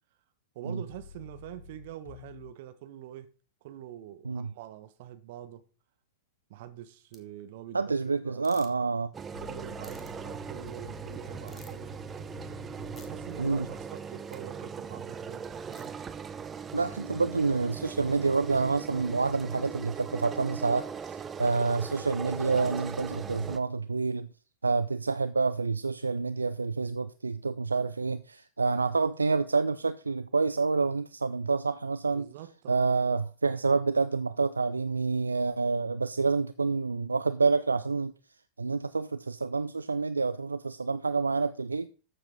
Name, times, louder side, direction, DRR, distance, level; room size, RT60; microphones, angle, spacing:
voice 1, 0.5-3.3 3.6-5.6 6.5-8.0 8.2-8.7 9.4-12.0 12.9-15.9 32.1-32.9, right 12 dB, 50° right, 1.3 m, -45 dB
sound 1, 0.9-2.6 9.3-13.9, left 7 dB, 65° left, 0.6 m, -49 dB
sound 2, 7.1-7.2 8.4-8.7 9.8-10.1 11.5-11.8 12.9-13.1 14.3-14.4 15.7-15.9, left 4 dB, 20° left, 2.0 m, -53 dB
voice 2, 7.7-9.1 13.4-13.7 16.7-20.9 21.4-24.3 24.6-32.3 32.7-38.1 38.6-41.9, right 4 dB, 80° right, 0.4 m, -28 dB
sound 3, 9.1-23.6, right 6 dB, 20° right, 0.7 m, -40 dB
13.5 x 7.4 x 3.7 m
figure-of-eight pair, 90°, 0 cm